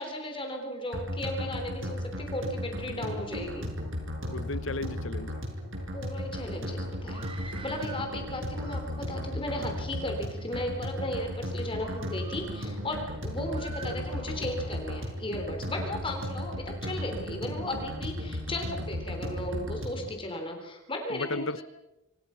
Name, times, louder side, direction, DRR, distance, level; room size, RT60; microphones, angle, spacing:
voice 1, 0.0-3.7 5.9-21.6, left 1 dB, 25° left, 3.5 m, -36 dB
sound 1, 0.9-20.1, left 1 dB, 70° right, 6.5 m, -35 dB
voice 2, 4.3-5.3 21.1-21.6, left 2 dB, 70° left, 1.0 m, -34 dB
Screaming, 7.0-8.1 8.5-9.3 9.9-10.5 11.0-11.2 11.7-12.7 13.5-14.5, right 4 dB, 25° right, 2.6 m, -47 dB
27.0 x 26.0 x 5.8 m
head